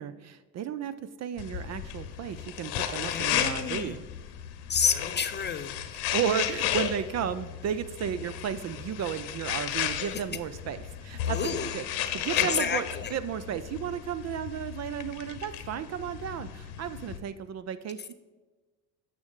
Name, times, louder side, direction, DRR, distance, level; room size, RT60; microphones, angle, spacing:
voice 1, 0.0-4.0 5.9-18.1, right 9 dB, 35° right, 13 dB, 0.4 m, -34 dB
sound 1, 1.4-17.2, left 10 dB, 60° left, 0.9 m, -34 dB
voice 2, 3.1-4.0 4.7-5.8 11.3-11.7 12.3-13.2, left 6 dB, 25° left, 10 dB, 0.5 m, -30 dB
9.2 x 6.5 x 3.7 m, 1.3 s
hypercardioid pair, 65°, 46 cm